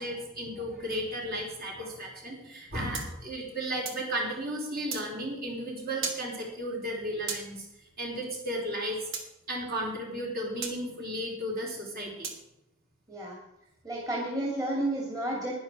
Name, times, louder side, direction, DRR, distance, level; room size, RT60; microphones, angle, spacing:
voice 1, 0.0-7.6 8.0-9.0 9.5-12.3, equal, 45° right, -2 dB, 4.5 m, -34 dB
sound 1, 2.9-4.1 4.9-5.1 6.0-6.2 7.3-7.5 9.1-9.3 10.6-10.8 12.2-12.4, right 5 dB, 60° right, 2.2 m, -35 dB
voice 2, 13.8-15.5, right 1 dB, 15° right, -2 dB, 2.5 m, -31 dB
11.0 x 10.5 x 6.1 m, 0.88 s
head